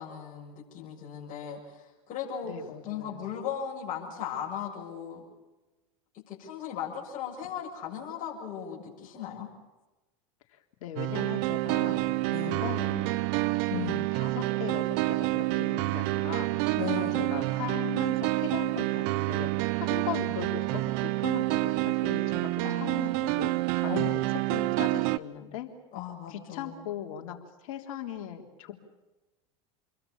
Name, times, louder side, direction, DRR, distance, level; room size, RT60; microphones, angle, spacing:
voice 1, 0.0-2.5 2.8-5.2 6.1-9.5 12.3-12.6 13.7-14.1 16.8-17.4 22.6-22.9 23.8-24.2 25.9-26.7, left 9 dB, 45° left, -3 dB, 7.4 m, -37 dB
voice 2, 2.4-3.2 10.5-12.1 12.4-13.2 13.7-25.7 26.3-27.4 27.6-28.7, left 10 dB, 70° left, 4 dB, 3.6 m, -39 dB
sound 1, 11.0-25.2, right 20 dB, 60° right, 0.9 m, -28 dB
28.5 x 22.5 x 7.1 m, 1.1 s
hypercardioid pair, 95°, 18 cm